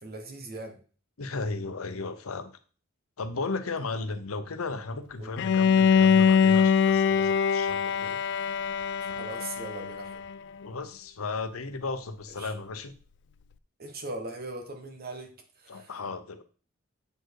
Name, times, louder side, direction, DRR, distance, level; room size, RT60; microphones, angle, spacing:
voice 1, 0.0-0.8 5.2-5.4 9.0-10.2 12.4-12.5 13.8-15.3 15.6-15.9, right 2 dB, 45° right, 5 dB, 1.3 m, -40 dB
voice 2, 1.2-2.5 3.2-8.2 9.3-9.4 10.6-12.9 15.7-16.4, left 3 dB, 85° left, 10 dB, 0.8 m, -35 dB
Bowed string instrument, 5.4-10.4, left 6 dB, 55° left, 0.3 m, -23 dB
7.7 x 4.5 x 4.7 m, 0.39 s
head